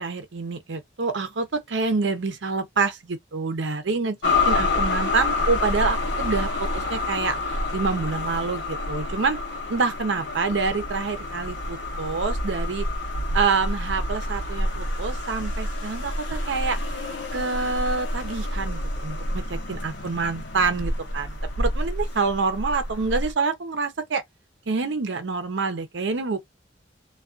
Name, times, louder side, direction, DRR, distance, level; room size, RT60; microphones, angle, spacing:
voice 1, 0.0-9.4 9.7-12.9 13.3-16.8 17.3-24.2 24.7-26.4, right 4 dB, 70° right, 0.6 m, -27 dB
sound 1, 4.2-23.3, left 2 dB, 70° left, 0.7 m, -28 dB
2.4 x 2.3 x 2.4 m
head